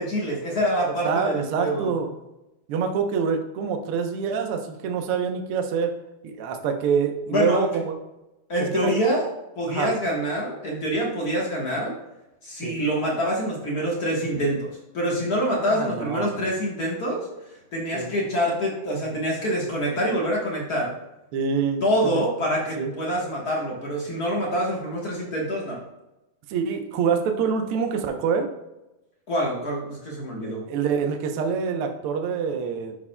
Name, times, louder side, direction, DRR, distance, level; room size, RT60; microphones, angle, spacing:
voice 1, 0.0-1.9 7.3-7.6 8.5-9.3 9.6-11.9 12.4-17.3 17.7-20.9 21.8-25.8 29.3-30.6, equal, 55° left, -3 dB, 1.0 m, -26 dB
voice 2, 1.0-2.1 2.7-5.9 6.2-8.0 8.7-9.0 9.7-9.9 12.6-12.8 15.7-16.3 17.9-18.1 21.3-22.2 22.8-22.9 26.5-28.5 30.4-33.0, right 6 dB, 80° right, 4 dB, 1.2 m, -26 dB
12.0 x 5.0 x 2.2 m, 0.95 s
omnidirectional pair, 3.6 m